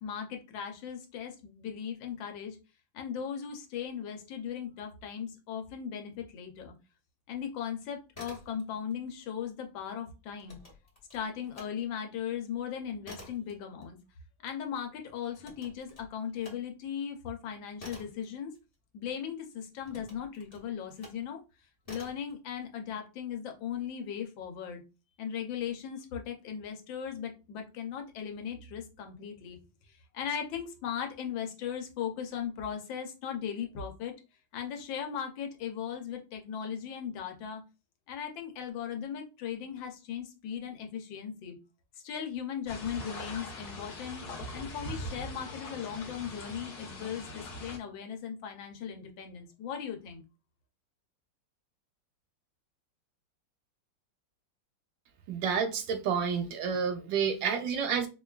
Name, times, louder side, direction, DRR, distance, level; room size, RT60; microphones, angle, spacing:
voice 1, 0.0-2.6 2.9-6.7 7.3-10.6 11.1-14.0 14.4-18.5 18.9-21.4 21.9-24.8 25.2-29.6 29.9-34.1 34.5-37.6 38.1-41.6 42.0-44.2 44.5-50.2, left 8 dB, 85° left, 1.5 m, -38 dB
sound 1, 8.0-9.0 9.2-11.7 12.1-19.2 19.8-21.3 21.8-22.3, left 1 dB, 25° left, 0.9 m, -51 dB
sound 2, 42.7-47.8, left 1 dB, 60° left, 1.4 m, -41 dB
voice 2, 55.3-58.1, right 6 dB, 90° right, 1.3 m, -29 dB
4.8 x 2.3 x 2.3 m
omnidirectional pair, 2.0 m